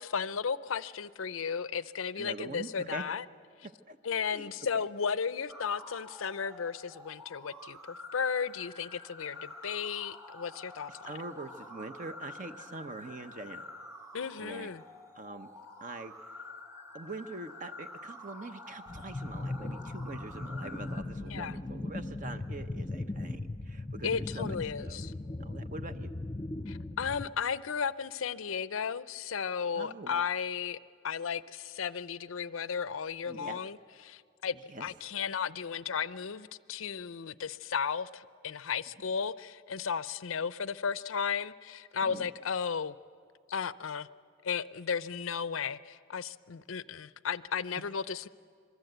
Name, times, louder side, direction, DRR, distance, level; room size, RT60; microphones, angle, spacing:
voice 1, 0.0-3.2 4.0-11.1 14.1-14.8 21.3-21.6 24.0-25.1 26.7-30.8 31.0-33.8 34.0-43.0 43.5-44.1 44.4-48.3, left 6 dB, 85° left, 16 dB, 0.6 m, -34 dB
voice 2, 2.2-3.1 3.6-4.0 4.3-4.5 4.7-4.9 11.0-13.7 14.4-14.7 15.1-15.5 15.8-16.4 16.9-25.1 25.4-26.1 29.7-30.2 33.3-33.6 34.7-34.9 42.0-42.3, right 2 dB, 40° right, 9 dB, 0.8 m, -44 dB
sound 1, 5.5-21.0, left 2 dB, 15° right, 1.6 m, -48 dB
sound 2, 18.9-27.3, left 2 dB, 25° left, 0.6 m, -38 dB
26.0 x 23.5 x 8.0 m, 2.2 s
head